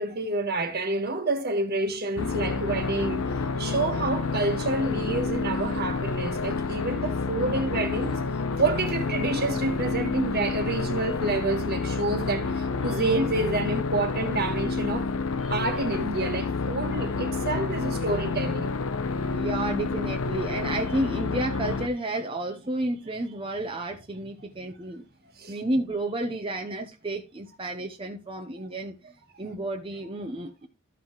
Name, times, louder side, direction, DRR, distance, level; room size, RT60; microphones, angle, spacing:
voice 1, 0.0-8.2 8.6-15.1 15.5-18.7 21.0-21.1 23.1-23.2 23.5-23.6 25.4-25.6, right 2 dB, 50° right, 1.5 m, -28 dB
sound 1, 2.2-21.9, left 4 dB, 85° left, 0.8 m, -29 dB
voice 2, 19.3-25.0 25.5-29.0 29.4-30.7, right 1 dB, 25° right, 0.8 m, -31 dB
13.5 x 5.7 x 3.0 m
head